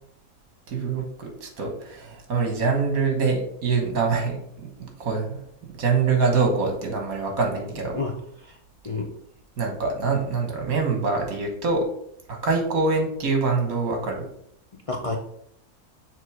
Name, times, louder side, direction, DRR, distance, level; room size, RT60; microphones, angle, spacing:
voice 1, 0.7-5.4 5.7-8.0 9.6-11.9 12.3-14.3, right 4 dB, 65° right, 2 dB, 1.7 m, -25 dB
voice 2, 7.9-8.6 8.8-9.1 14.7-15.2, left 3 dB, 60° left, 2 dB, 0.3 m, -30 dB
6.8 x 3.1 x 4.8 m, 0.70 s
omnidirectional pair, 1.6 m